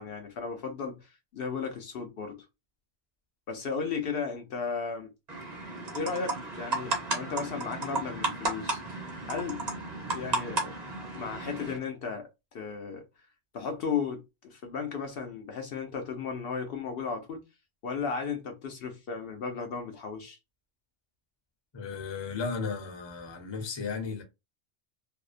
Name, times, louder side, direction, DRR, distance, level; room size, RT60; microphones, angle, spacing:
voice 1, 0.0-2.4 3.5-5.1 5.9-9.6 10.1-10.8 11.1-12.3 12.5-13.0 13.5-17.4 17.8-20.4, left 5 dB, 65° left, 0.7 m, -35 dB
sound 1, 5.3-11.8, right 2 dB, 40° right, 0.9 m, -34 dB
voice 2, 21.7-24.2, left 5 dB, 30° left, 0.6 m, -35 dB
2.7 x 2.0 x 2.4 m
omnidirectional pair, 1.1 m